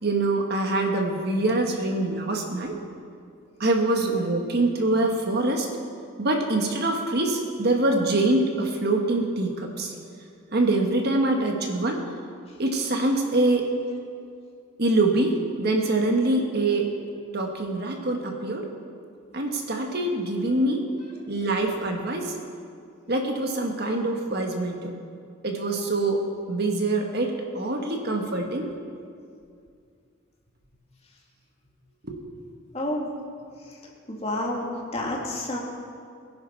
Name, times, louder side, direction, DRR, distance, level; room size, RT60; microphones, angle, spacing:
voice 1, 0.0-2.7 3.6-5.7 6.2-9.9 10.5-12.0 12.6-13.6 14.8-16.9 17.3-18.7 19.3-20.8 21.3-22.3 23.1-24.9 25.4-26.2 26.5-28.7 32.0-32.2, right 2 dB, 50° right, 2 dB, 1.5 m, -24 dB
voice 2, 32.7-33.1 34.1-35.6, left 1 dB, 30° left, -2 dB, 2.4 m, -29 dB
21.5 x 11.0 x 4.7 m, 2.3 s
head